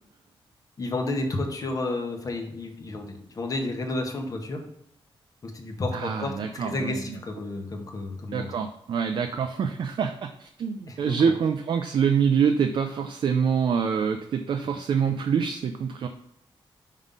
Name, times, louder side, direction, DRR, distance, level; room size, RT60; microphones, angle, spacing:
voice 1, 0.8-4.6 5.4-8.5 10.9-11.3, left 2 dB, 40° left, 4 dB, 0.9 m, -31 dB
voice 2, 5.9-7.0 8.3-16.1, right 7 dB, 60° right, 5 dB, 0.4 m, -25 dB
5.5 x 3.7 x 5.2 m, 0.78 s
wide cardioid pair, 165°, 9 cm